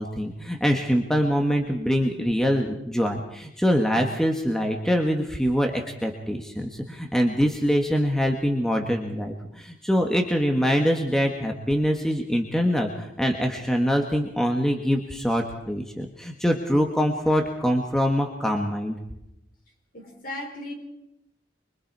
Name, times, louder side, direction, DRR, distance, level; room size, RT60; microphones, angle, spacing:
voice 1, 0.0-18.9, equal, 5° left, 2 dB, 1.6 m, -24 dB
voice 2, 19.9-20.7, left 1 dB, 50° left, 1 dB, 5.6 m, -36 dB
25.0 x 24.5 x 4.8 m, 0.84 s
head